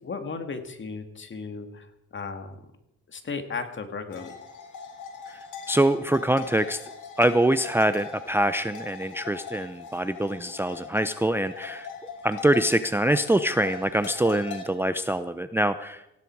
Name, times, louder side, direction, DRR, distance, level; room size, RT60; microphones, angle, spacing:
voice 1, 0.0-2.6 3.1-4.3, left 4 dB, 40° left, 7 dB, 2.3 m, -35 dB
sound 1, 4.1-14.7, left 6 dB, 85° left, 2.7 m, -41 dB
voice 2, 5.3-6.8 7.2-11.9 12.2-16.1, right 1 dB, 10° right, 11 dB, 0.6 m, -24 dB
18.5 x 16.0 x 4.8 m, 0.86 s
cardioid pair, 90°, 30 cm